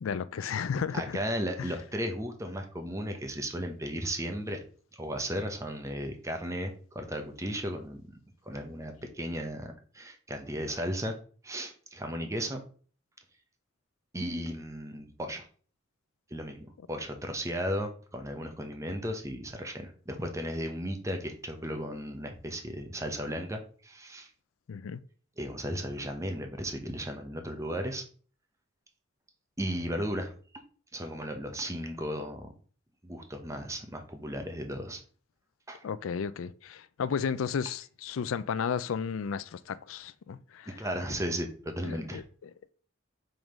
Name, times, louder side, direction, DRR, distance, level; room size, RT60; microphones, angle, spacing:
voice 1, 0.0-1.2 1.6-1.7 24.7-25.0 35.8-40.7 41.8-42.7, left 6 dB, 80° left, 0.4 m, -33 dB
voice 2, 0.9-4.6 5.0-8.0 8.5-11.1 11.4-12.6 14.1-15.5 16.3-24.3 25.4-28.0 29.6-30.3 30.9-32.5 33.0-35.0 35.7-35.8 40.7-42.2, equal, 15° right, 0.9 m, -35 dB
4.9 x 3.8 x 5.1 m
head